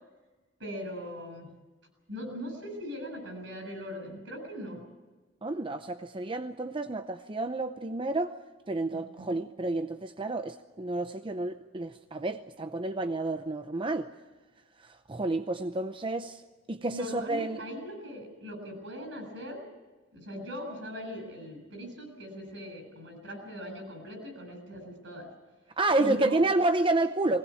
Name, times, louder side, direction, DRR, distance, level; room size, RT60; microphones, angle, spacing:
voice 1, 0.6-1.5 2.1-4.8 8.9-9.3 16.9-19.7 20.1-25.3 26.0-26.4, equal, 70° right, 6 dB, 7.8 m, -40 dB
voice 2, 5.4-8.3 8.7-14.1 14.8-16.4 16.7-17.6 25.8-27.4, right 2 dB, 25° right, 8 dB, 0.7 m, -30 dB
21.0 x 18.5 x 8.6 m, 1.2 s
head